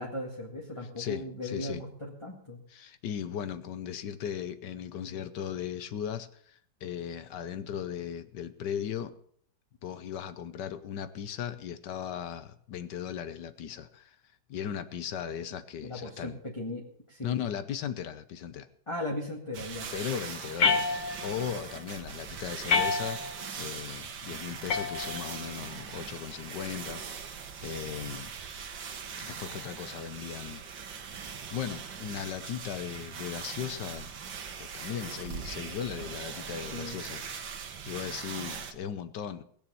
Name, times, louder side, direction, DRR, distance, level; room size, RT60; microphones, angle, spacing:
voice 1, 0.0-2.6 15.8-17.3 18.9-19.9 36.7-37.0, left 1 dB, 15° left, -3 dB, 2.0 m, -37 dB
voice 2, 1.0-1.8 2.7-9.1 9.8-14.2 14.5-16.4 17.2-18.7 19.9-20.9 21.2-23.2 23.6-28.4 29.2-30.6 31.5-34.1 34.6-37.2 37.5-39.4, left 9 dB, 65° left, 13 dB, 1.4 m, -37 dB
sound 1, 19.5-38.7, right 6 dB, 70° right, 2.0 m, -41 dB
sound 2, 20.6-21.5 22.7-23.5 24.7-25.5, left 4 dB, 50° left, 1.3 m, -28 dB
20.0 x 7.1 x 6.9 m, 0.63 s
omnidirectional pair, 2.1 m